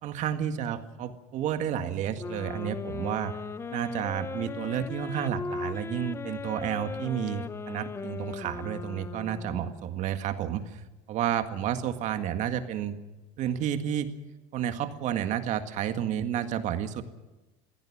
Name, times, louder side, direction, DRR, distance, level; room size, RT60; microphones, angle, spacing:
voice 1, 0.0-3.3 3.7-13.0 13.4-14.1 14.5-17.0, right 9 dB, 50° right, 8 dB, 1.9 m, -31 dB
sound 1, 2.2-9.9, left 5 dB, 15° left, 0.7 m, -38 dB
22.0 x 16.0 x 8.7 m, 1.1 s
cardioid pair, 145°, 16 cm